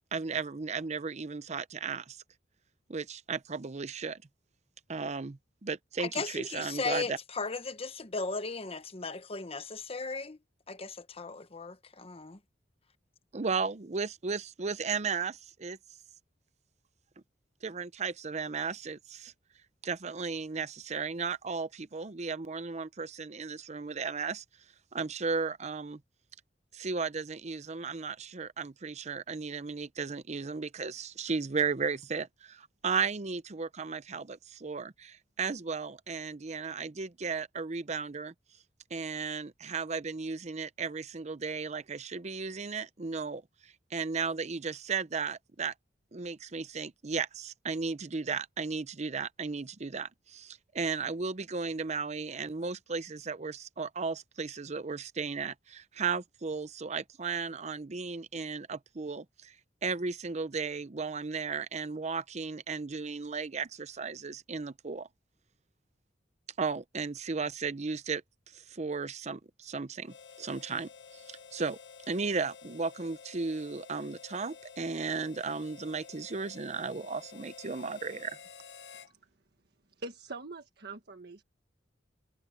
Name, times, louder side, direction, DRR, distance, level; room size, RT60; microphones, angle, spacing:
voice 1, 0.1-2.2 2.9-4.2 4.9-7.2 13.3-15.8 17.6-19.3 19.8-24.4 24.9-26.0 26.7-38.3 38.9-45.7 46.1-59.5 59.8-65.1 66.6-68.2 68.5-71.8 72.1-78.4, right 5 dB, 40° right, 0.7 m, -35 dB
voice 2, 6.0-10.4 10.7-12.4, left 3 dB, 35° left, 1.1 m, -36 dB
Harmonica, 70.0-79.1, left 6 dB, 80° left, 0.9 m, -51 dB
voice 3, 80.0-81.4, right 3 dB, 65° right, 1.6 m, -43 dB
head